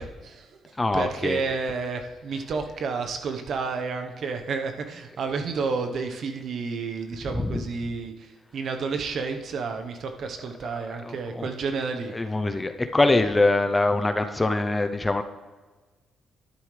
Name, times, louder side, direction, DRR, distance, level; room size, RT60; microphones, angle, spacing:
voice 1, 0.0-12.2, right 4 dB, 60° right, 6 dB, 1.0 m, -31 dB
voice 2, 0.8-1.4 7.3-7.6 11.0-11.5 12.1-15.2, left 2 dB, 20° left, 8 dB, 0.6 m, -23 dB
11.5 x 9.2 x 3.3 m, 1.3 s
cardioid pair, 90°, 0 cm